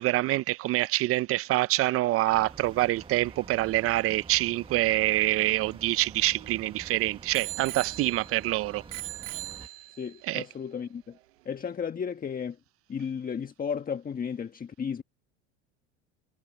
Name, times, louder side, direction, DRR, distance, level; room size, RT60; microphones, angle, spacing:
voice 1, 0.0-8.8 10.2-10.4, right 17 dB, 40° right, 0.5 m, -26 dB
sound 1, 2.3-9.7, right 4 dB, 15° right, 1.3 m, -48 dB
Bicycle bell, 5.4-6.7 7.3-8.5 8.9-10.2 10.9-11.0, right 17 dB, 85° right, 3.3 m, -40 dB
voice 2, 10.0-11.2 11.4-12.6 12.9-15.0, left 7 dB, 25° left, 1.3 m, -34 dB
supercardioid pair, 100°, 36 cm